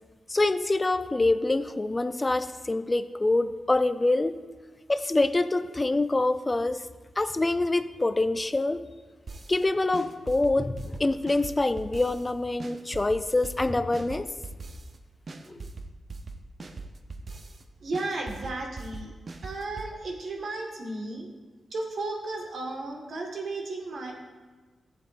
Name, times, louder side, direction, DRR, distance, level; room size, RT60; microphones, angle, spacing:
voice 1, 0.3-4.4 4.9-6.8 7.2-8.8 9.5-14.3 15.5-15.6, left 2 dB, 25° left, 12 dB, 0.5 m, -25 dB
sound 1, 9.3-9.6 9.9-12.3 12.6-15.0 15.3-17.6 17.9-19.9, right 3 dB, 50° right, 0.7 m, -41 dB
voice 2, 17.8-19.1 19.4-21.3 21.7-24.1, right 2 dB, 70° right, 1 dB, 1.7 m, -34 dB
14.5 x 7.1 x 2.6 m, 1.3 s
cardioid pair, 55°, 0 cm